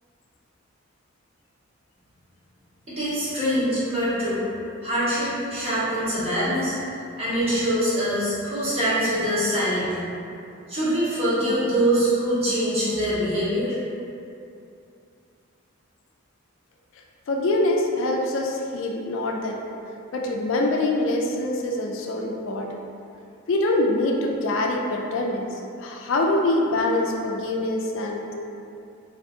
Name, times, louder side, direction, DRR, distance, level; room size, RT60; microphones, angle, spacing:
voice 1, 2.9-4.4 4.8-6.7 7.2-10.1 10.7-13.7, equal, 30° right, -10 dB, 0.9 m, -24 dB
voice 2, 17.3-19.6 20.1-22.8 23.5-25.5 25.8-28.3, left 2 dB, 70° left, 1 dB, 0.3 m, -24 dB
2.6 x 2.5 x 3.5 m, 2.6 s
head